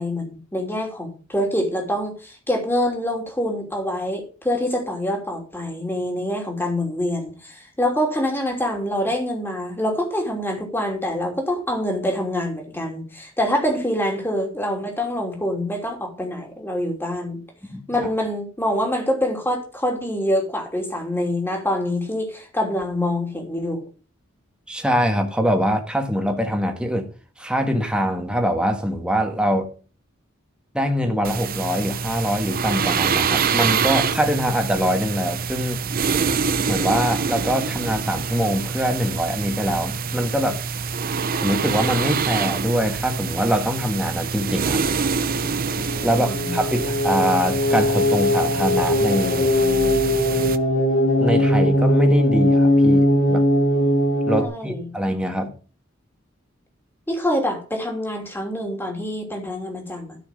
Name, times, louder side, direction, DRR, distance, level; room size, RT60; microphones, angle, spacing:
voice 1, 0.0-17.4 17.9-23.8 46.1-46.6 54.4-54.9 57.1-60.2, left 1 dB, 10° left, 3.0 m, -25 dB
voice 2, 17.7-18.1 24.7-27.1 27.4-29.7 30.7-35.8 36.7-40.6 41.4-44.8 46.0-49.5 51.2-53.4 54.3-55.5, equal, 5° right, 1.8 m, -23 dB
sound 1, 31.2-50.6, right 5 dB, 45° right, 0.7 m, -26 dB
sound 2, 45.0-54.5, left 1 dB, 65° left, 2.8 m, -20 dB
12.5 x 6.4 x 5.3 m
head